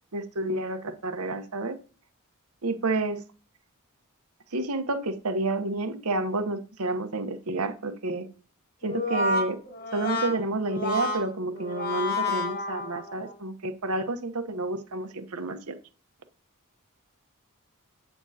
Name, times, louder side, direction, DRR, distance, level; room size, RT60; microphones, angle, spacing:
voice 1, 0.1-1.8 2.6-3.2 4.5-8.3 8.8-9.6 9.9-15.8, right 2 dB, 85° right, 8 dB, 1.0 m, -30 dB
Brass instrument, 8.8-13.3, left 2 dB, 45° left, 1.7 m, -30 dB
8.6 x 6.9 x 2.8 m, 0.36 s
head